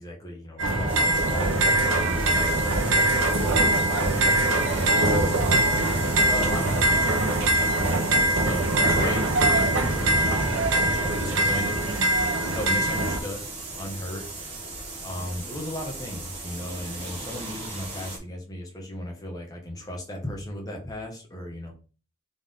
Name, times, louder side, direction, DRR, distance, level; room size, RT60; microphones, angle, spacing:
voice 1, 0.0-2.8 3.6-5.5 5.7-9.4 10.0-10.5 11.0-11.9 12.4-13.5 13.8-14.3 15.0-21.7, left 1 dB, 20° left, -1 dB, 1.3 m, -36 dB
sound 1, 0.6-13.2, right 1 dB, 70° right, 0.9 m, -22 dB
sound 2, 0.9-18.2, right 2 dB, 25° right, 1.6 m, -37 dB
4.0 x 3.5 x 3.7 m, 0.36 s
head